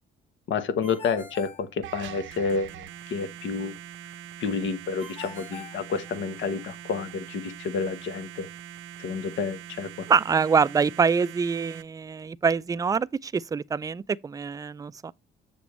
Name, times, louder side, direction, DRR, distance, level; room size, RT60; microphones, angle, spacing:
voice 1, 0.5-3.8 4.4-8.5 9.0-10.1, left 5 dB, 70° left, 1.1 m, -30 dB
Ringtone, 0.8-2.4 5.0-6.6, left 3 dB, 30° left, 3.2 m, -44 dB
sound 1, 1.8-11.8, right 11 dB, 80° right, 0.7 m, -43 dB
voice 2, 10.1-15.1, right 5 dB, 20° right, 0.3 m, -25 dB
7.0 x 6.8 x 3.1 m
cardioid pair, 90°, 20 cm